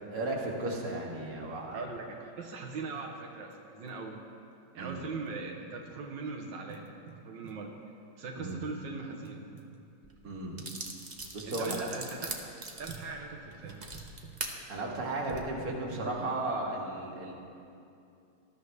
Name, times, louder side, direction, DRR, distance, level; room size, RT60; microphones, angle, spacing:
voice 1, 0.1-1.8 4.8-5.1 8.4-8.6 10.2-10.5 11.3-11.9 14.7-17.3, right 2 dB, 55° right, -2 dB, 2.3 m, -35 dB
voice 2, 1.7-4.2 4.7-6.9 7.2-7.7 8.2-9.5 11.5-12.3 12.8-13.8, right 4 dB, 90° right, 0 dB, 1.8 m, -40 dB
sound 1, 3.5-3.6 3.9-4.0 4.8-6.0 6.7-7.7 8.5-9.8 10.6-10.8 11.6-11.8 12.1-12.4 12.9-13.2 13.6-14.5 15.3-16.2, right 6 dB, 75° right, 1.6 m, -49 dB
sound 2, 10.0-10.1 10.6-14.5 15.1-15.4, right 3 dB, 30° right, 1.1 m, -40 dB
20.0 x 13.5 x 3.3 m, 2.5 s
omnidirectional pair, 1.9 m